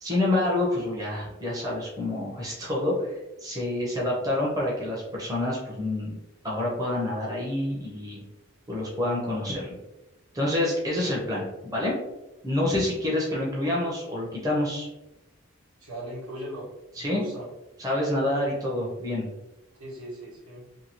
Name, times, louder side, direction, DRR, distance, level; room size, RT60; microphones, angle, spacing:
voice 1, 0.0-6.2 6.4-8.2 8.7-9.7 10.3-11.9 12.4-14.9 17.0-17.2 17.8-19.3, left 1 dB, 15° right, -4 dB, 0.6 m, -27 dB
voice 2, 15.8-16.7 17.0-17.5 19.8-20.6, right 1 dB, 90° right, -6 dB, 1.3 m, -38 dB
2.8 x 2.6 x 2.8 m, 0.96 s
head